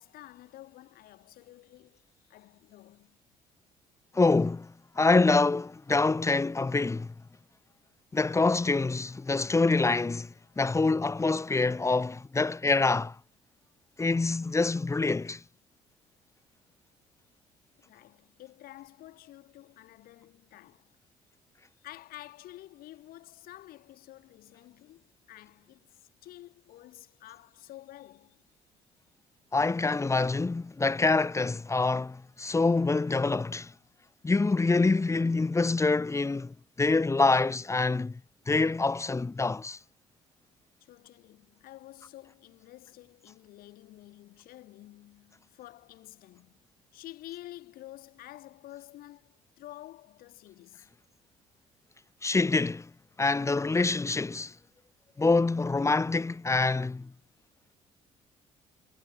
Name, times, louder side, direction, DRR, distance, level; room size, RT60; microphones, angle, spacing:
voice 1, 0.0-3.2 17.8-21.0 21.8-28.4 40.8-46.6 46.9-50.9, left 15 dB, 65° left, 5.6 m, -50 dB
voice 2, 4.1-7.1 8.1-13.2 14.0-15.4 29.5-33.7 34.2-38.2 38.5-39.8 52.2-52.9 53.2-54.5 55.2-57.1, left 3 dB, 20° left, 0.9 m, -26 dB
hypercardioid pair, 50°, 16 cm